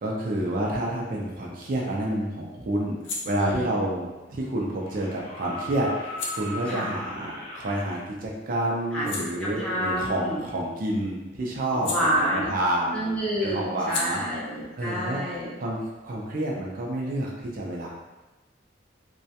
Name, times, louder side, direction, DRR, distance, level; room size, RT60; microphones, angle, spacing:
voice 1, 0.0-13.0 13.4-14.2 14.8-15.2 15.6-17.9, right 1 dB, 50° right, -2 dB, 0.4 m, -29 dB
sound 1, 2.9-8.1 8.5-12.8 13.0-16.4, left 3 dB, 75° left, 0.4 m, -41 dB
voice 2, 3.4-3.7 6.7-6.9 8.9-10.4 11.7-12.5 12.9-15.5, equal, 5° left, -7 dB, 0.5 m, -29 dB
sound 2, 4.8-8.0 9.8-9.9, left 1 dB, 40° left, 0.9 m, -38 dB
2.3 x 2.1 x 2.7 m, 1.1 s
head